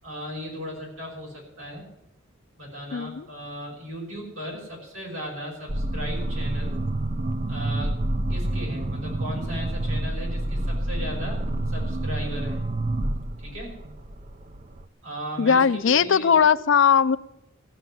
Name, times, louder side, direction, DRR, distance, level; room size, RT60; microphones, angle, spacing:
voice 1, 0.0-1.8 2.6-6.8 7.5-7.9 8.3-11.4 11.7-12.6 13.4-13.7 15.0-16.4, equal, 80° right, -2 dB, 6.3 m, -36 dB
voice 2, 2.9-3.3 15.4-17.2, left 7 dB, 60° left, 14 dB, 0.4 m, -19 dB
sound 1, 5.7-14.9, right 1 dB, 35° right, 0.6 m, -28 dB
15.0 x 7.0 x 10.0 m, 0.87 s
head